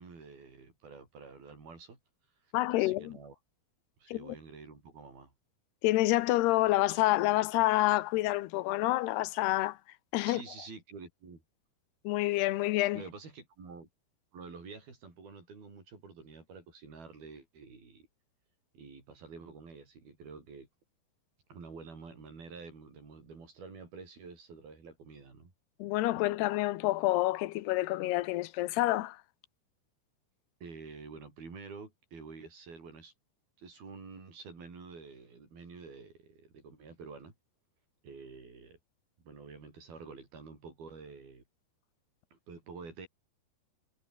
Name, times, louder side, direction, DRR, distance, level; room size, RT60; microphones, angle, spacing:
voice 1, 0.0-2.0 2.8-3.3 4.0-5.3 10.3-11.4 12.9-13.9 14.3-18.1 18.7-20.7 21.5-25.5 30.6-33.1 33.6-37.3 38.0-38.8 39.2-41.4 42.3-43.1, right 4 dB, 65° right, 8.5 m, -48 dB
voice 2, 2.5-3.2 4.1-4.4 5.8-9.8 10.1-10.4 12.0-13.0 25.8-29.2, left 17 dB, 90° left, 2.9 m, -28 dB
omnidirectional pair, 4.6 m